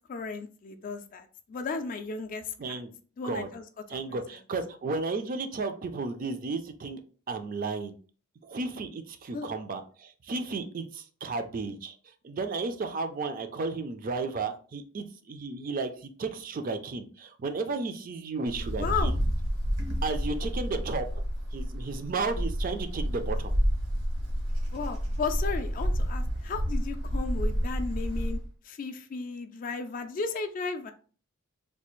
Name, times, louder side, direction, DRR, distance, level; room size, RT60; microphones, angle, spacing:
voice 1, 0.1-2.8 3.2-3.6 3.9-4.2 9.3-9.5 18.8-19.1 24.7-28.4 28.6-30.9, left 4 dB, 40° left, 7 dB, 0.3 m, -34 dB
voice 2, 2.6-2.9 3.2-3.5 3.9-7.0 7.3-7.9 8.4-12.0 12.2-19.2 20.0-21.2 21.5-23.5, right 3 dB, 40° right, 8 dB, 0.4 m, -33 dB
Wind, 18.5-28.5, equal, 80° right, 0.9 m, -30 dB
3.3 x 2.3 x 3.0 m, 0.40 s
head